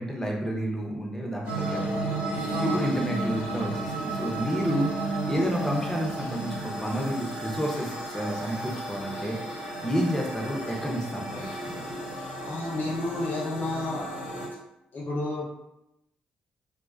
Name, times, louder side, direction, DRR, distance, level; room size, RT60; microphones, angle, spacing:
voice 1, 0.0-2.0 2.6-4.9 5.3-9.4 9.8-11.7, equal, 10° left, -1 dB, 0.7 m, -30 dB
sound 1, 1.4-14.5, right 2 dB, 85° left, 0.6 m, -33 dB
voice 2, 2.5-2.8 12.4-14.0 14.9-15.5, left 2 dB, 45° left, -4 dB, 0.8 m, -31 dB
2.4 x 2.1 x 2.4 m, 0.87 s
hypercardioid pair, 40°, 4 cm